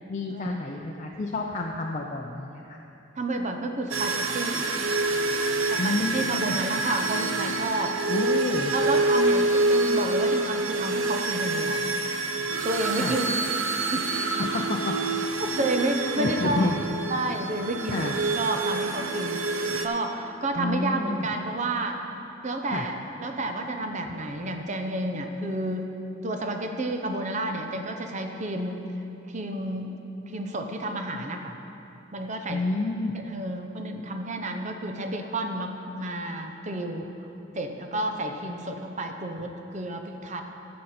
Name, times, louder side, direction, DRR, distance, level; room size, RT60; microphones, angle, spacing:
voice 1, 0.1-2.8 5.8-6.6 8.1-8.7 13.0-13.2 14.4-15.0 15.6-15.9 16.2-16.8 17.9-18.2 20.6-21.3 22.7-22.9 32.5-33.1, left 2 dB, 40° left, 0 dB, 0.5 m, -29 dB
voice 2, 3.2-4.7 5.7-7.9 8.7-11.8 12.6-13.3 13.9-14.1 15.6-16.7 17.1-22.0 22.4-25.9 26.2-28.9 29.3-29.9 30.3-31.6 32.1-32.7 33.3-37.3 37.5-40.4, right 2 dB, 35° right, 4 dB, 0.7 m, -30 dB
sound 1, 3.9-19.9, right 2 dB, 85° right, 0.7 m, -27 dB
14.0 x 6.5 x 4.3 m, 3.0 s
head